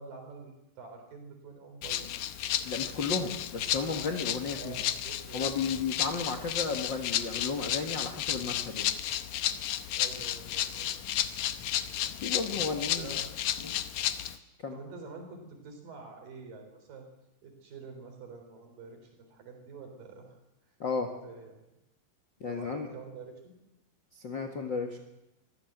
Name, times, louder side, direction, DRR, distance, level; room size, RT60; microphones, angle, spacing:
voice 1, 0.0-2.3 4.5-5.9 10.0-11.6 12.7-13.4 14.7-17.1 17.4-20.4 21.2-21.6 22.5-23.6, right 4 dB, 60° right, 4 dB, 5.6 m, -47 dB
Rattle (instrument), 1.8-14.4, left 11 dB, 75° left, 1.7 m, -33 dB
voice 2, 2.6-4.8 5.3-8.9 12.2-13.1 13.6-13.7 14.6-14.8 20.8-21.1 22.4-22.9 24.1-25.0, left 4 dB, 45° left, 5 dB, 1.5 m, -33 dB
24.5 x 16.0 x 7.9 m, 0.92 s
omnidirectional pair, 4.5 m